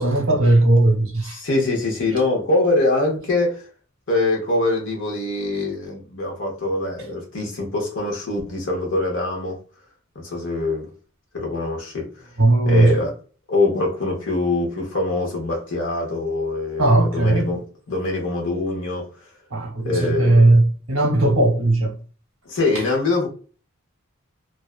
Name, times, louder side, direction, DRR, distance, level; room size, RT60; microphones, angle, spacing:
voice 1, 0.0-1.4 12.4-12.9 16.8-17.5 19.5-21.9, right 2 dB, 65° right, 0.8 m, -17 dB
voice 2, 1.2-3.6 4.1-9.6 10.1-10.9 11.3-12.1 12.7-13.1 13.5-17.6 17.9-19.1 19.8-20.6 22.5-23.3, left 2 dB, 60° left, 0.8 m, -23 dB
2.5 x 2.2 x 2.3 m
head